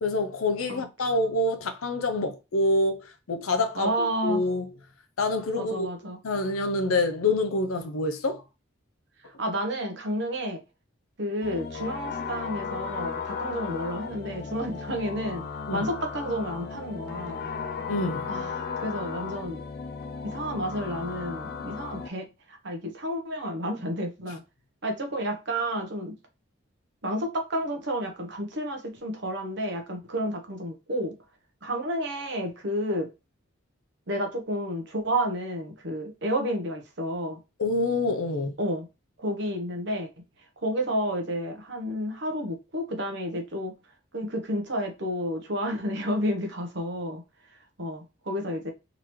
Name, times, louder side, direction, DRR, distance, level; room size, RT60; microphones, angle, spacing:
voice 1, 0.0-4.7 5.2-5.9 6.2-8.4 15.7-15.9 17.9-18.3 37.6-38.5, left 2 dB, 80° left, 0.7 m, -26 dB
voice 2, 3.8-4.4 5.6-6.2 9.4-10.6 11.2-15.4 15.7-17.4 18.3-19.6 20.2-24.4 24.8-26.1 27.0-31.2 31.6-33.1 34.1-37.4 38.6-38.9 39.2-40.1 40.6-43.7 44.1-47.2 47.8-48.7, equal, 55° right, 0.9 m, -31 dB
sound 1, 11.4-22.1, left 5 dB, 45° left, 0.4 m, -35 dB
3.8 x 3.0 x 3.1 m
head